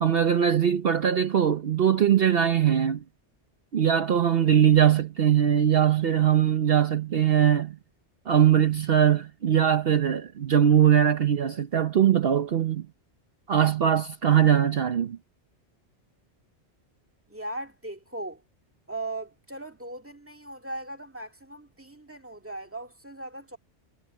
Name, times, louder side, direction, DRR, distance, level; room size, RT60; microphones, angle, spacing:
voice 1, 0.0-3.0 3.7-7.8 8.3-12.9 13.5-15.2, right 9 dB, 55° right, 1.0 m, -21 dB
voice 2, 17.3-18.4 18.9-23.6, right 2 dB, 10° right, 2.0 m, -38 dB
omnidirectional pair, 1.2 m